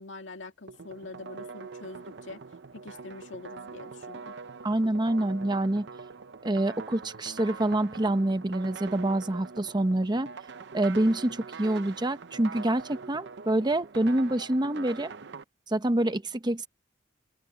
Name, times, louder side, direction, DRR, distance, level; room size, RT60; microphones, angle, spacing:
voice 1, 0.0-2.4 2.7-4.4, left 2 dB, 80° left, 2.1 m, -44 dB
sound 1, 0.7-15.4, right 4 dB, 65° right, 0.7 m, -43 dB
voice 2, 4.6-5.9 6.4-10.3 10.7-15.1 15.7-16.7, right 1 dB, 25° right, 0.8 m, -26 dB
open air
head